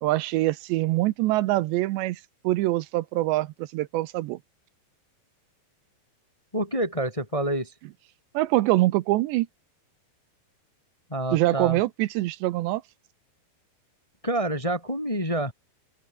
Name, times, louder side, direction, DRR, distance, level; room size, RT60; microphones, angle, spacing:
voice 1, 0.0-4.4 8.3-9.5 11.3-12.8, right 17 dB, 80° right, 3.0 m, -24 dB
voice 2, 6.5-7.7 11.1-11.8 14.2-15.5, right 1 dB, 10° left, 1.9 m, -27 dB
open air
omnidirectional pair, 5.1 m